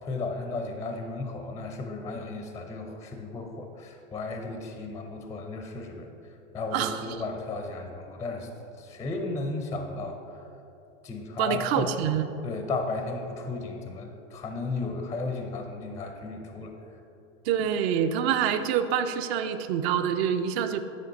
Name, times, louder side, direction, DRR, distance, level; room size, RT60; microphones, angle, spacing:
voice 1, 0.0-6.1 6.5-8.5 8.8-10.5 11.0-11.9 12.4-16.8, left 3 dB, 10° left, 4 dB, 0.4 m, -34 dB
voice 2, 11.4-12.3 17.4-20.8, right 8 dB, 55° right, 10 dB, 0.6 m, -26 dB
9.6 x 4.3 x 4.0 m, 2.9 s
hypercardioid pair, 110°, 38 cm